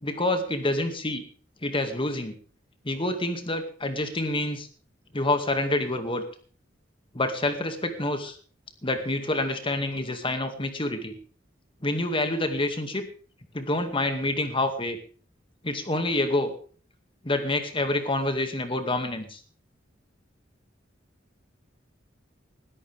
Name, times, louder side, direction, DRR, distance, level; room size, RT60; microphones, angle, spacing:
voice 1, 0.0-1.2 1.6-2.4 2.8-4.7 5.1-6.2 7.1-8.4 8.8-11.1 11.8-13.1 13.5-15.0 15.6-16.5 17.2-19.4, left 2 dB, 30° left, 7 dB, 2.2 m, -27 dB
20.0 x 13.5 x 3.5 m, 0.42 s
head